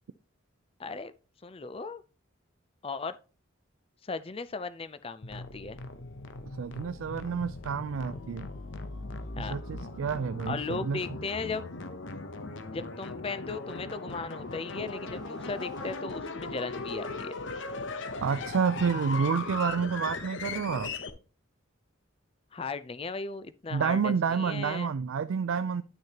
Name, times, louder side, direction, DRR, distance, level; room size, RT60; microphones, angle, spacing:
voice 1, 0.8-1.1 1.4-2.0 2.8-3.2 4.0-5.8 9.4-9.5 10.5-11.7 12.7-17.3 22.5-24.9, left 4 dB, 25° left, 0.5 m, -37 dB
sound 1, 5.2-21.1, left 3 dB, 65° left, 0.8 m, -38 dB
voice 2, 6.6-8.5 9.4-11.0 18.2-20.9 23.7-25.8, right 6 dB, 75° right, 0.4 m, -29 dB
sound 2, 13.7-16.5, right 2 dB, 20° right, 1.1 m, -54 dB
10.0 x 6.4 x 2.9 m
head